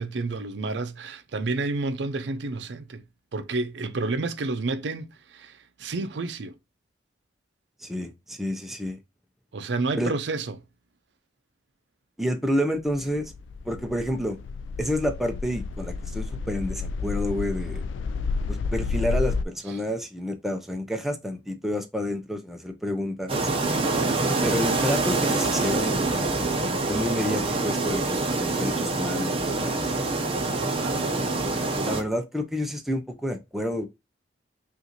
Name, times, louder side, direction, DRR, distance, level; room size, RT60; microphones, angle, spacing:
voice 1, 0.0-3.0 3.3-6.6 9.5-10.6 30.6-31.0, right 3 dB, 70° right, 0.5 m, -30 dB
voice 2, 7.8-9.0 10.0-10.1 12.2-13.3 13.6-14.4 14.8-17.9 18.5-23.4 24.4-29.7 31.1-33.9, equal, ahead, 0.5 m, -29 dB
sound 1, 12.8-19.4, left 4 dB, 90° left, 0.3 m, -30 dB
sound 2, 23.3-32.0, right 3 dB, 30° right, 0.8 m, -25 dB
5.5 x 2.5 x 2.9 m
head